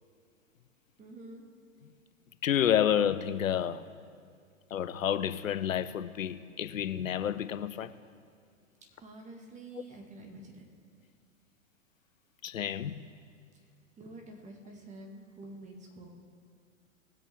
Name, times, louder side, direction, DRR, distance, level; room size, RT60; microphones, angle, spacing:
voice 1, 1.0-1.4 9.0-10.6 14.0-16.1, right 2 dB, 15° right, 1.7 m, -48 dB
voice 2, 2.4-3.9 4.7-7.9 12.4-13.0, left 9 dB, 75° left, 0.7 m, -29 dB
20.5 x 8.0 x 3.5 m
figure-of-eight pair, 110°, 41 cm